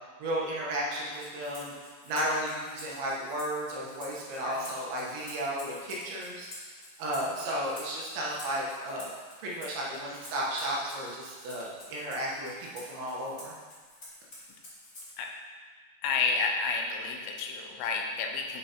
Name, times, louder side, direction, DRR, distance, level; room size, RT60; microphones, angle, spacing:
voice 1, 0.2-1.7 2.0-6.5 7.0-9.1 9.4-13.6, right 1 dB, 75° right, -4 dB, 3.2 m, -33 dB
Rattle (instrument), 1.1-15.3, left 1 dB, 65° left, 0.7 m, -49 dB
voice 2, 16.0-18.6, left 4 dB, 85° left, 1 dB, 3.4 m, -30 dB
10.0 x 6.1 x 2.9 m, 1.5 s
omnidirectional pair, 5.9 m